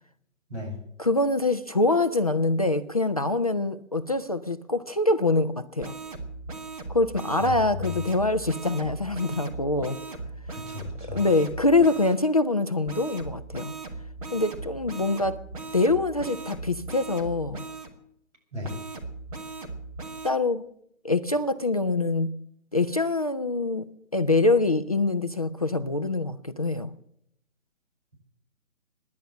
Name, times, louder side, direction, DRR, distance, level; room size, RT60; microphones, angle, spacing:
voice 1, 1.0-5.9 6.9-10.0 11.1-13.7 14.3-15.4 15.7-17.6 20.2-20.7 21.0-22.4 22.7-26.9, left 2 dB, 30° left, 8 dB, 0.5 m, -24 dB
sound 1, 5.8-12.2 12.9-17.9 18.6-20.3, right 3 dB, 25° right, 2.1 m, -38 dB
voice 2, 7.4-8.0 10.5-11.2 18.5-18.7, left 4 dB, 60° right, 1 dB, 7.7 m, -35 dB
16.5 x 10.5 x 7.5 m, 0.71 s
figure-of-eight pair, 145°, 39 cm